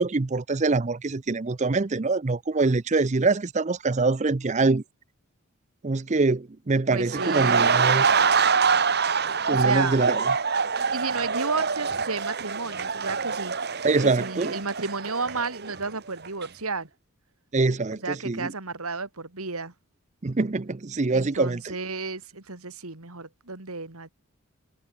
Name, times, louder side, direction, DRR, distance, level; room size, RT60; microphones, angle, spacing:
voice 1, 0.0-4.8 5.8-8.2 9.5-10.3 13.8-14.6 17.5-18.5 20.2-21.8, right 3 dB, 30° right, 0.5 m, -24 dB
voice 2, 6.9-7.7 9.5-10.0 10.9-13.5 14.0-16.9 17.9-19.7 21.1-24.1, right 4 dB, 80° right, 2.7 m, -32 dB
sound 1, 7.1-15.9 16.3-16.5, right 5 dB, 45° right, 1.6 m, -25 dB
head